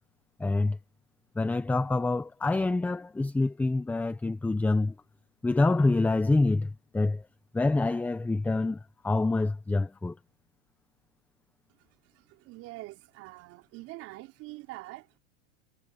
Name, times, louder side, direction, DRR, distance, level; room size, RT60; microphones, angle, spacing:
voice 1, 0.4-0.8 1.4-4.9 5.4-7.2 7.5-10.2, left 2 dB, 5° left, 0.8 m, -26 dB
voice 2, 12.0-15.2, right 20 dB, 40° right, 3.8 m, -45 dB
supercardioid pair, 140°, 35 cm